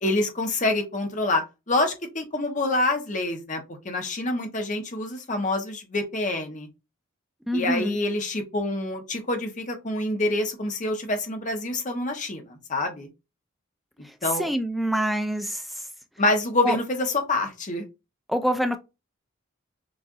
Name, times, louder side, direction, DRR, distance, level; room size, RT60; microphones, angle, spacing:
voice 1, 0.0-6.7 7.5-13.1 14.2-14.5 16.2-17.8, left 2 dB, 35° left, 1.0 m, -26 dB
voice 2, 7.5-8.0 14.4-15.6 16.6-16.8 18.3-18.8, equal, ahead, 0.3 m, -25 dB
6.1 x 2.5 x 2.5 m
head